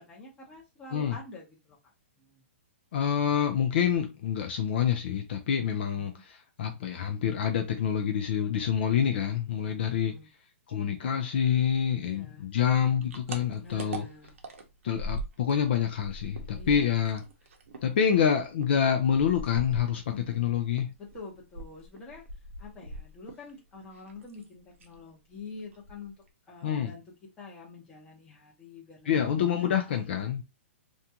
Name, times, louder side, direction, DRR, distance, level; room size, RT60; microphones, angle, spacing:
voice 1, 0.0-2.4 5.9-6.2 9.7-10.3 12.0-12.5 13.6-14.3 16.5-17.1 20.1-20.5 21.0-22.2 22.6-26.1 26.5-27.0 27.4-29.1 29.4-30.0, left 3 dB, 10° left, 0.8 m, -47 dB
voice 2, 2.9-10.2 10.7-14.1 14.8-17.2 17.8-20.0 20.3-20.9 26.6-26.9 29.1-30.4, left 8 dB, 50° left, 0.4 m, -27 dB
sound 1, 12.6-15.7 15.9-20.4 20.7-23.5 23.8-24.5 24.8-25.0 25.3-25.4 25.7-26.3, right 1 dB, 75° right, 0.7 m, -40 dB
2.5 x 2.3 x 2.8 m
hypercardioid pair, 165°, 7 cm